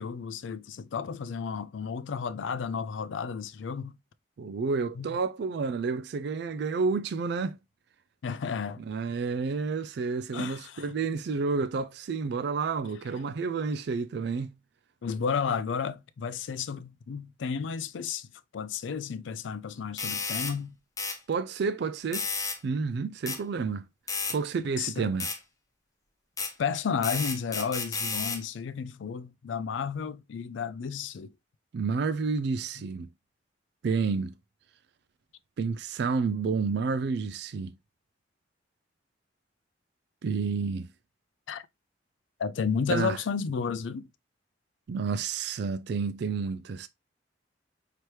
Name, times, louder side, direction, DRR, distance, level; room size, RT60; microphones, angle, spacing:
voice 1, 0.0-3.9 5.0-5.2 8.2-8.8 10.3-10.9 15.0-18.3 18.5-20.8 24.8-25.1 26.6-31.3 41.5-41.7 42.4-44.1, left 6 dB, 85° left, 0.4 m, -32 dB
voice 2, 4.4-7.6 8.8-14.5 21.3-22.3 22.6-23.8 24.3-25.3 31.7-33.1 33.8-34.3 35.6-37.7 40.2-40.9 42.9-43.2 44.9-46.9, right 4 dB, 65° right, 0.3 m, -30 dB
sound 1, 20.0-20.6 21.0-21.2 22.1-22.6 23.3-23.4 24.1-24.4 25.2-25.4 26.4-26.5 27.0-28.4, left 4 dB, 20° left, 0.7 m, -32 dB
4.5 x 2.9 x 3.1 m
head